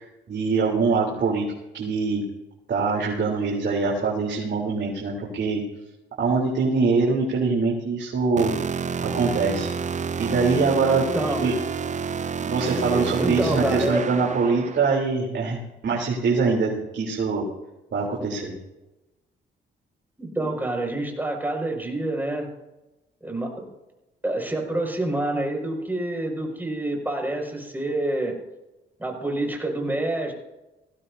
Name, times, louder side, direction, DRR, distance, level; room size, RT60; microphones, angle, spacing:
voice 1, 0.0-1.5 1.7-2.2 2.7-5.6 6.2-8.5 9.0-9.7 10.2-11.0 11.4-11.5 12.4-17.4 17.9-18.5, right 4 dB, 65° right, -4 dB, 3.8 m, -23 dB
sound 1, 8.4-14.9, right 6 dB, 40° right, 0.6 m, -29 dB
voice 2, 10.9-11.5 12.9-14.1 20.2-22.5 23.2-23.7 24.2-28.4 29.0-30.3, right 1 dB, 10° right, 1 dB, 6.1 m, -27 dB
20.0 x 16.0 x 2.8 m, 0.98 s
cardioid pair, 75°, 20 cm